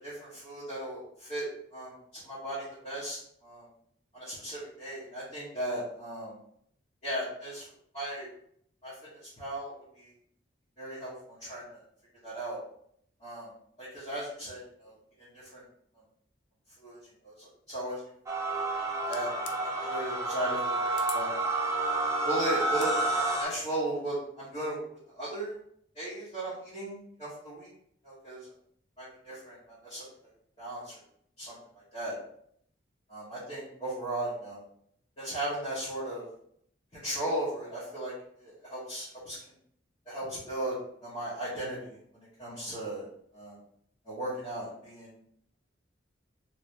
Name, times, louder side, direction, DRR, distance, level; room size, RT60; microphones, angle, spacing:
voice 1, 0.0-1.5 1.7-3.6 4.1-6.3 7.0-7.7 7.9-8.3 8.8-9.1 9.4-10.1 10.8-11.8 12.2-12.6 13.2-13.5 13.8-15.6 16.8-17.0 17.2-18.0 19.1-19.3 19.6-20.8 21.1-21.3 22.2-23.0 23.4-24.8 25.1-25.6 25.9-27.7 28.0-28.5 29.0-30.0 30.6-31.0 31.4-31.6 31.9-32.1 33.1-34.6 35.2-36.3 36.9-39.3 40.0-40.8 41.0-43.1 43.3-43.6 44.0-45.1, right 1 dB, 35° left, -13 dB, 1.2 m, -36 dB
sound 1, 18.3-23.4, right 2 dB, 15° right, 0.5 m, -30 dB
sound 2, 19.1-19.6 20.9-21.3 22.6-23.0, left 9 dB, 70° left, 0.3 m, -43 dB
3.2 x 2.9 x 2.8 m, 0.68 s
head